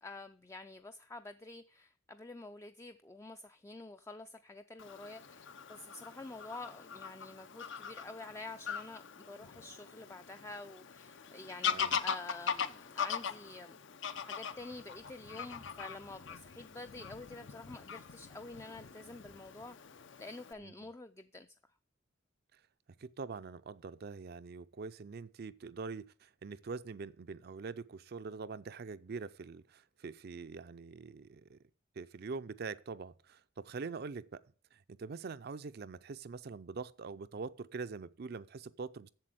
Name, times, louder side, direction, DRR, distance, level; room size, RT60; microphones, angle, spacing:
voice 1, 0.0-13.8 14.2-19.8 20.2-21.5, left 2 dB, 15° left, 0.4 m, -48 dB
Fowl / Bird vocalization bird call bird song, 4.8-20.5, left 7 dB, 65° left, 0.7 m, -41 dB
voice 2, 23.0-31.6 32.0-34.4 34.7-39.1, right 4 dB, 50° right, 0.5 m, -44 dB
7.6 x 7.6 x 7.6 m
head